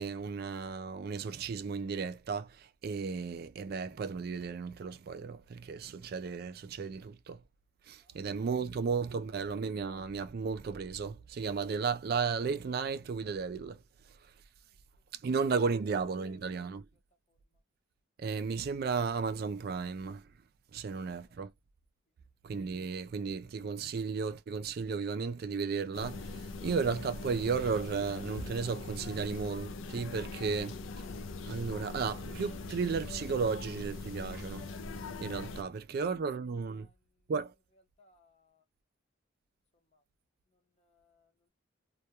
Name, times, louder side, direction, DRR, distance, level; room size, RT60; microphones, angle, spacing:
voice 1, 0.0-7.4 7.9-13.8 14.2-14.3 15.1-16.9 18.2-20.3 20.7-21.5 22.4-30.8 31.4-34.7 35.2-36.9 37.3-37.5, right 5 dB, 50° right, 0.3 m, -34 dB
sound 1, 25.9-35.6, left 3 dB, 70° left, 0.4 m, -42 dB
Clapping / Chirp tweet, 32.4-32.7 34.3-34.7, right 1 dB, ahead, 0.8 m, -59 dB
voice 2, 35.6-36.1 36.7-37.0 37.7-38.6 39.9-40.0 40.8-41.5, left 2 dB, 30° left, 0.7 m, -69 dB
2.2 x 2.1 x 2.8 m
head